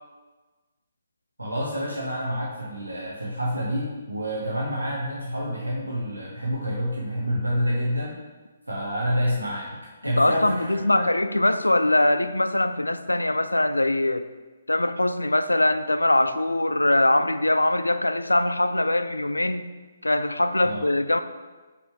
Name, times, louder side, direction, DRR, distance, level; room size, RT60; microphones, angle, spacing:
voice 1, 1.4-8.2 8.7-9.7 10.0-11.1 20.6-20.8, equal, 80° right, -3 dB, 1.0 m, -28 dB
voice 2, 10.0-14.3 14.7-19.7 20.0-21.2, left 1 dB, 80° left, 11 dB, 0.4 m, -22 dB
5.2 x 5.1 x 4.7 m, 1.3 s
figure-of-eight pair, 135°, 0 cm